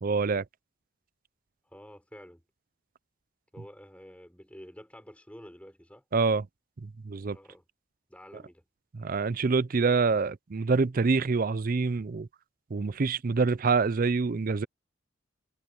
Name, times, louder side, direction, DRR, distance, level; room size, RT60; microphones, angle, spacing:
voice 1, 0.0-0.4 6.1-6.5 6.8-7.4 8.9-12.3 12.7-14.7, right 4 dB, 40° right, 0.5 m, -26 dB
voice 2, 1.6-2.4 3.5-6.0 7.3-7.6 8.1-8.7, equal, 5° left, 4.9 m, -49 dB
head